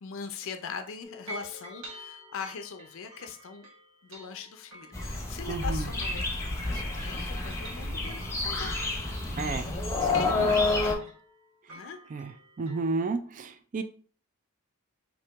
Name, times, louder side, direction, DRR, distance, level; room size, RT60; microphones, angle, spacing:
voice 1, 0.0-3.7 4.0-8.7 10.1-11.1 11.7-12.0, left 5 dB, 60° left, 7 dB, 0.4 m, -41 dB
sound 1, 1.0-7.0 7.3-13.1, equal, 65° right, 1.5 m, -49 dB
sound 2, 4.9-10.9, left 3 dB, 15° left, 0.9 m, -29 dB
voice 2, 5.5-5.9 9.4-9.7 9.9-10.5 12.1-12.3 12.6-13.8, right 3 dB, 35° right, 9 dB, 0.3 m, -32 dB
5.8 x 2.7 x 3.4 m, 0.43 s
head